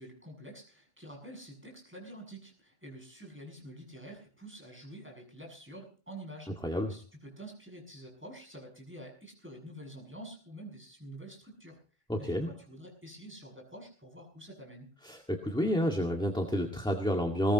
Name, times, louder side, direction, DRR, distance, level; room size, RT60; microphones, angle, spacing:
voice 1, 0.0-11.8 12.2-14.9, right 1 dB, 10° right, 1 dB, 7.4 m, -48 dB
voice 2, 12.1-12.5 15.0-17.5, equal, 5° left, 2 dB, 2.0 m, -29 dB
21.5 x 19.0 x 3.1 m, 0.40 s
omnidirectional pair, 1.1 m